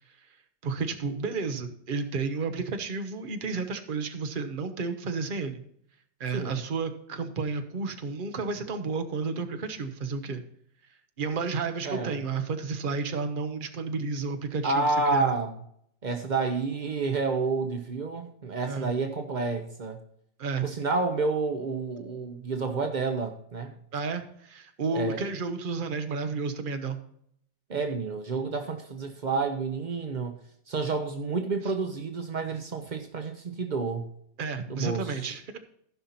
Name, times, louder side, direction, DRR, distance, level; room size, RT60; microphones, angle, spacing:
voice 1, 0.6-5.6 6.2-10.4 11.2-15.3 18.7-18.9 20.4-20.6 23.9-27.0 34.4-35.6, right 4 dB, 35° right, 7 dB, 0.9 m, -31 dB
voice 2, 11.8-12.2 14.6-15.6 16.0-20.0 20.6-23.7 24.9-25.2 27.7-30.4 30.7-34.1 34.7-35.2, right 4 dB, 70° right, 6 dB, 0.4 m, -29 dB
14.5 x 5.7 x 4.1 m, 0.69 s
omnidirectional pair, 2.0 m